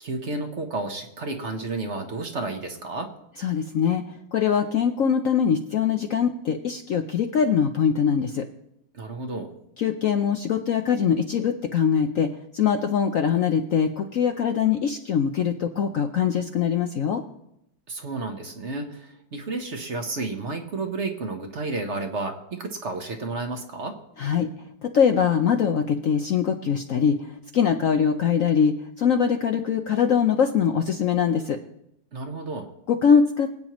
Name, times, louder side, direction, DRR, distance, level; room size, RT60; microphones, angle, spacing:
voice 1, 0.0-3.1 8.9-9.5 17.9-24.0 32.1-32.7, right 3 dB, 45° right, 5 dB, 1.1 m, -31 dB
voice 2, 3.4-4.0 4.3-8.5 9.8-17.2 24.2-24.5 24.8-27.2 27.5-31.6 32.9-33.5, left 7 dB, 65° left, 6 dB, 0.8 m, -22 dB
25.0 x 8.8 x 3.0 m, 0.81 s
omnidirectional pair, 2.1 m